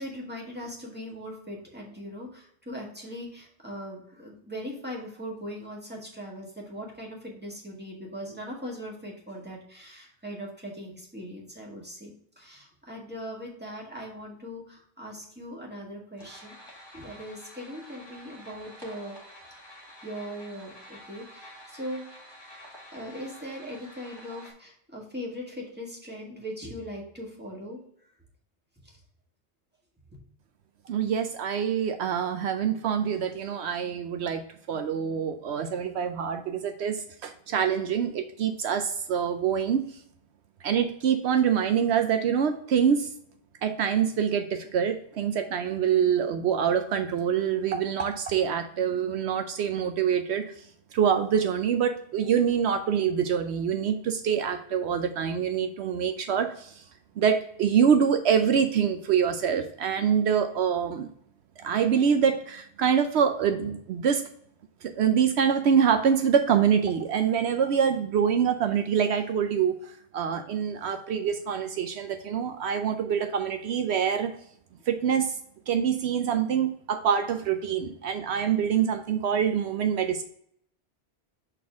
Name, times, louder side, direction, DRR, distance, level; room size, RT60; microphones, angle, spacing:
voice 1, 0.0-19.2 20.0-22.0 22.9-27.8 28.8-28.9, equal, 10° right, -2 dB, 1.7 m, -40 dB
sound 1, 16.2-24.5, equal, 20° left, 1.7 m, -49 dB
voice 2, 30.9-34.4 34.7-39.8 40.6-43.1 43.6-50.5 50.9-56.8 57.2-61.1 61.6-64.2 64.8-74.3 74.9-75.3 75.7-80.2, right 7 dB, 75° right, 7 dB, 0.9 m, -25 dB
6.8 x 4.1 x 3.5 m, 0.66 s
omnidirectional pair, 1.1 m